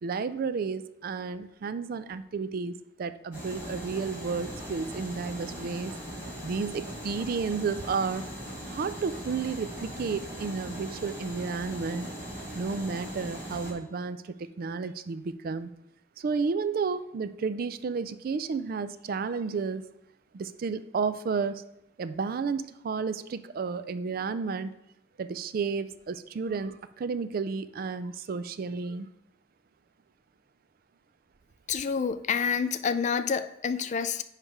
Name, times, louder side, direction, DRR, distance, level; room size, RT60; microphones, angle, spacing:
voice 1, 0.0-5.9 6.4-8.2 8.7-12.1 12.6-15.7 16.2-19.9 20.3-21.6 22.0-24.7 25.2-29.1, right 5 dB, 55° right, 13 dB, 0.4 m, -32 dB
sound 1, 3.3-13.7, equal, 10° right, 2.9 m, -39 dB
voice 2, 31.7-34.2, left 6 dB, 40° left, 11 dB, 0.4 m, -28 dB
9.7 x 3.3 x 4.9 m, 0.83 s
head